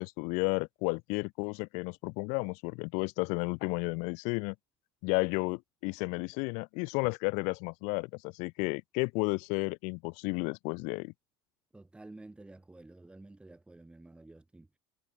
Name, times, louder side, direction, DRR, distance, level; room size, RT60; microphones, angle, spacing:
voice 1, 0.0-4.5 5.0-11.1, left 33 dB, 60° left, 0.8 m, -32 dB
voice 2, 11.7-14.7, right 2 dB, 5° right, 3.4 m, -51 dB
supercardioid pair, 125°, 14 cm